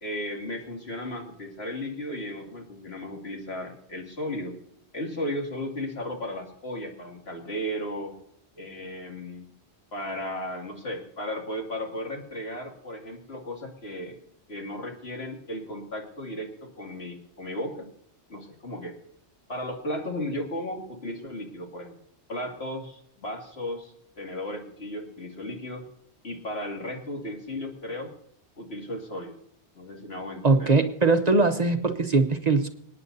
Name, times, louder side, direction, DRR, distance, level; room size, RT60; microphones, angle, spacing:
voice 1, 0.0-4.5 4.9-8.1 8.6-9.4 9.9-14.2 14.5-17.9 18.3-19.0 19.5-21.9 22.3-25.8 26.2-28.1 28.6-29.3 29.7-30.7, left 1 dB, 70° left, 1 dB, 2.7 m, -35 dB
voice 2, 30.4-32.7, right 3 dB, 40° right, 7 dB, 0.9 m, -21 dB
27.0 x 9.6 x 2.7 m, 0.72 s
omnidirectional pair, 1.1 m